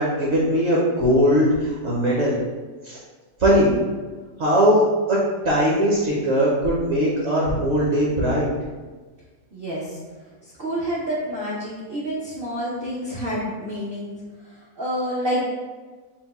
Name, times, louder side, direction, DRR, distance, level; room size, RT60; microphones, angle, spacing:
voice 1, 0.0-2.3 2.8-3.0 3.4-3.8 4.4-5.2 5.4-8.5, equal, 55° right, -5 dB, 0.8 m, -20 dB
voice 2, 9.5-10.0 10.6-14.1 14.8-15.4, equal, 70° right, -6 dB, 0.5 m, -28 dB
4.4 x 2.2 x 4.1 m, 1.3 s
omnidirectional pair, 2.0 m